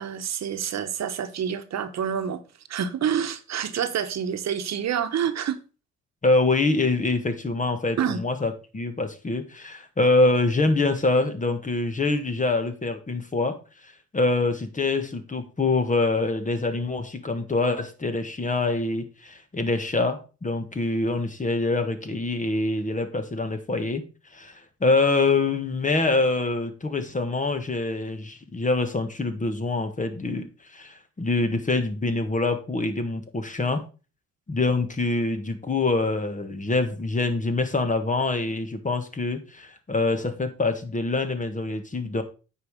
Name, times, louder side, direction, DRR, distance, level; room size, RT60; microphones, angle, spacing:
voice 1, 0.0-2.4 2.7-5.6 8.0-8.2, right 8 dB, 60° right, 1.1 m, -27 dB
voice 2, 6.2-13.6 14.1-24.0 24.3-33.8 34.5-42.2, left 3 dB, 25° left, 1.5 m, -25 dB
9.0 x 5.0 x 5.0 m
cardioid pair, 90°, 30 cm